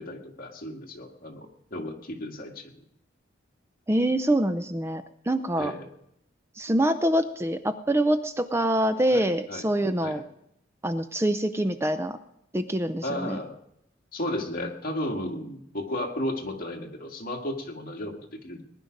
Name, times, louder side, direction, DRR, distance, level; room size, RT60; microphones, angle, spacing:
voice 1, 0.0-2.8 5.6-5.9 9.1-9.2 9.5-9.7 10.0-10.2 13.0-13.6 14.1-18.6, left 1 dB, 45° left, 1 dB, 2.0 m, -34 dB
voice 2, 3.9-5.7 6.6-10.2 10.8-12.2 12.5-13.4, right 1 dB, 15° right, 9 dB, 0.5 m, -25 dB
20.0 x 10.5 x 5.2 m, 0.76 s
head